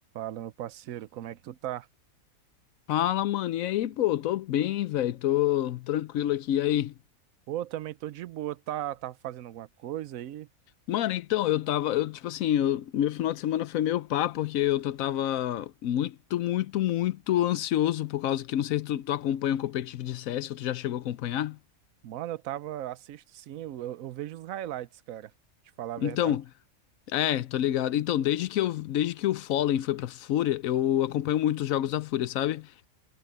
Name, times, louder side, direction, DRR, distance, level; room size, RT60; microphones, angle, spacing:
voice 1, 0.1-1.9 7.5-10.5 22.0-25.3 25.8-26.3, right 12 dB, 70° right, 1.1 m, -37 dB
voice 2, 2.9-6.9 10.9-21.6 26.0-26.4 27.1-32.9, left 12 dB, 75° left, 1.0 m, -27 dB
omnidirectional pair, 1.5 m